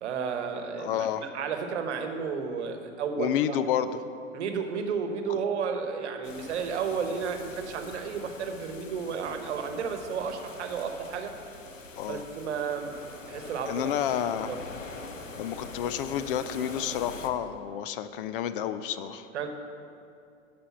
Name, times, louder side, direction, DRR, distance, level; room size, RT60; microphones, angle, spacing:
voice 1, 0.0-3.6 4.3-11.3 12.1-12.9 13.3-13.9 14.5-14.6 19.3-19.5, right 6 dB, 60° right, 6 dB, 1.1 m, -32 dB
voice 2, 0.8-1.3 3.2-3.9 5.3-5.4 12.0-12.2 13.7-14.5 15.4-19.3, left 10 dB, 45° left, 12 dB, 0.5 m, -30 dB
sound 1, 6.2-17.3, left 3 dB, 85° left, 0.9 m, -44 dB
12.5 x 5.1 x 5.9 m, 2.5 s
figure-of-eight pair, 95°, 38 cm